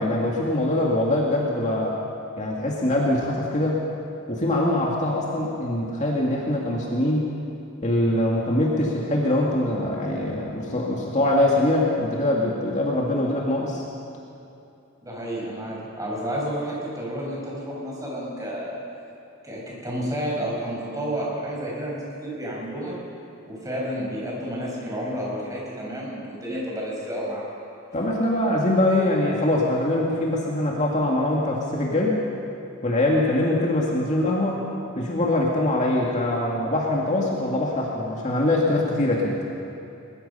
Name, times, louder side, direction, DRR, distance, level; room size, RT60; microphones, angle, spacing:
voice 1, 0.0-2.0 2.4-3.8 4.3-7.3 7.8-13.8 27.9-32.2 32.8-34.7 35.0-39.4, left 1 dB, 35° left, -3 dB, 2.2 m, -23 dB
voice 2, 15.0-18.8 19.4-22.9 23.4-27.4, equal, 15° right, -4 dB, 6.1 m, -30 dB
22.0 x 21.0 x 5.7 m, 2.8 s
head